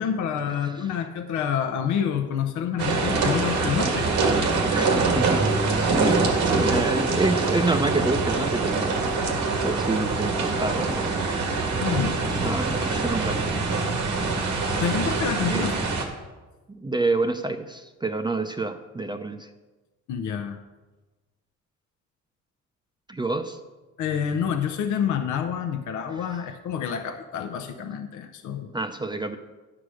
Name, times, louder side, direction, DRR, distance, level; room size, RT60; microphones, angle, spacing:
voice 1, 0.0-4.1 11.8-12.6 14.8-15.7 20.1-20.6 24.0-28.7, left 8 dB, 75° left, 7 dB, 0.7 m, -28 dB
sound 1, 2.8-16.0, right 3 dB, 80° right, 1.7 m, -24 dB
voice 2, 4.6-5.4 6.0-9.1 9.6-11.2 12.4-13.4 15.5-15.7 16.7-19.5 23.1-23.6 28.7-29.4, right 3 dB, 15° right, 6 dB, 0.5 m, -28 dB
9.9 x 4.9 x 6.3 m, 1.2 s
cardioid pair, 90°, 30 cm